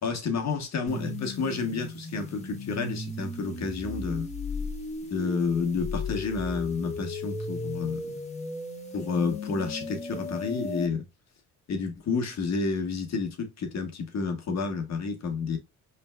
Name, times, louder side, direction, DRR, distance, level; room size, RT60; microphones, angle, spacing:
voice 1, 0.0-4.3 5.1-8.1 8.9-11.0 11.7-15.6, left 4 dB, 55° left, 1.5 m, -30 dB
sound 1, 0.9-10.9, left 3 dB, 20° left, 1.6 m, -36 dB
4.9 x 3.4 x 2.3 m
cardioid pair, 85°, 32 cm